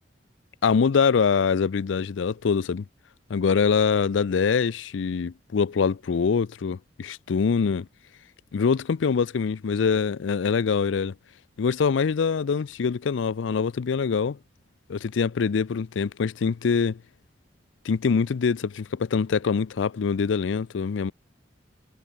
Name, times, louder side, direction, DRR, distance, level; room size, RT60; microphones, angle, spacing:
voice 1, 0.6-2.8 3.3-7.9 8.5-11.1 11.6-14.4 14.9-17.0 17.8-21.1, left 5 dB, 85° left, 0.4 m, -24 dB
head